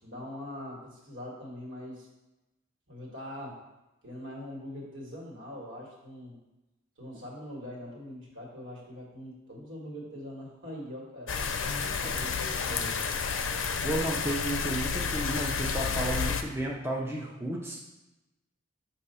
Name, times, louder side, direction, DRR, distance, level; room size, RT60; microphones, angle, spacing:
voice 1, 0.0-2.1 2.9-3.6 4.0-6.4 7.0-11.4 11.8-12.9, left 1 dB, 70° right, -3 dB, 1.7 m, -42 dB
sound 1, 11.3-16.4, left 5 dB, 70° left, 0.5 m, -30 dB
voice 2, 13.8-17.8, right 1 dB, 10° right, -3 dB, 0.5 m, -32 dB
6.5 x 2.7 x 5.5 m, 1.0 s
head